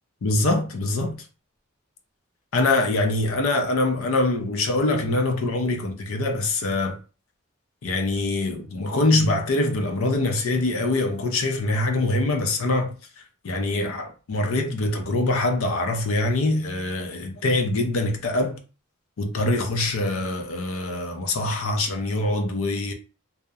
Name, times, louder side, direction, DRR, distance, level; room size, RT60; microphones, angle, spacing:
voice 1, 0.2-1.2 2.5-7.0 7.8-12.9 13.4-18.6 19.2-22.9, left 2 dB, 90° left, 0.5 m, -24 dB
2.7 x 2.0 x 2.3 m
head